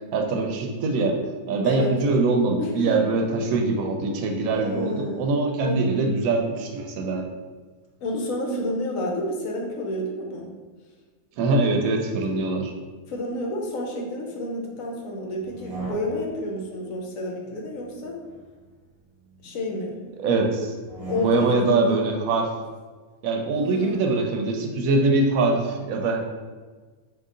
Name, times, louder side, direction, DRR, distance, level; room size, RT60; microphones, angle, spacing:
voice 1, 0.1-1.2 1.5-7.2 11.4-12.7 20.2-20.8 21.1-22.5 23.2-26.2, right 3 dB, 90° right, 2 dB, 1.0 m, -23 dB
voice 2, 1.6-1.9 2.6-3.1 4.5-5.9 8.0-10.5 13.1-18.2 19.4-20.0 21.1-22.0 23.5-24.1, left 1 dB, 75° left, -1 dB, 1.2 m, -30 dB
sound 1, 15.4-16.5 17.8-19.4 20.7-21.8, right 2 dB, 30° right, 1.0 m, -38 dB
3.8 x 2.7 x 3.7 m, 1.4 s
omnidirectional pair, 1.4 m